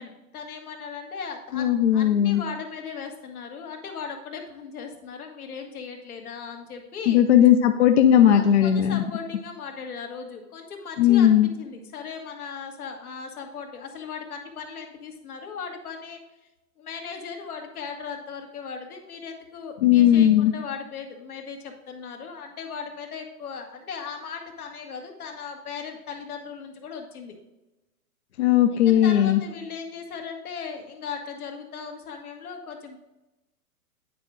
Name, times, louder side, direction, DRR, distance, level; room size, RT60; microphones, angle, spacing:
voice 1, 0.0-7.2 8.3-16.2 16.8-27.3 28.7-33.0, left 5 dB, 75° left, 3 dB, 1.8 m, -37 dB
voice 2, 1.5-2.4 7.1-9.0 11.0-11.5 19.8-20.5 28.4-29.4, left 10 dB, 50° left, 7 dB, 0.5 m, -17 dB
9.5 x 4.7 x 3.7 m, 1.0 s
hypercardioid pair, 170°, 45 cm